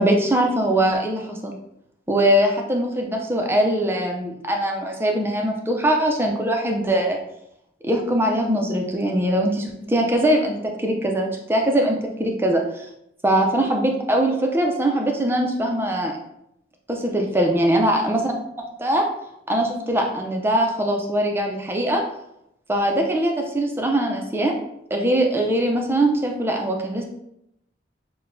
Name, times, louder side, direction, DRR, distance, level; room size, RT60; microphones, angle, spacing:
voice 1, 0.0-1.6 2.1-7.2 7.8-12.9 13.2-16.2 16.9-18.3 18.8-19.1 19.5-22.0 22.7-24.5 24.9-27.0, right 1 dB, 10° right, 2 dB, 0.5 m, -21 dB
6.4 x 2.2 x 2.6 m, 0.80 s
head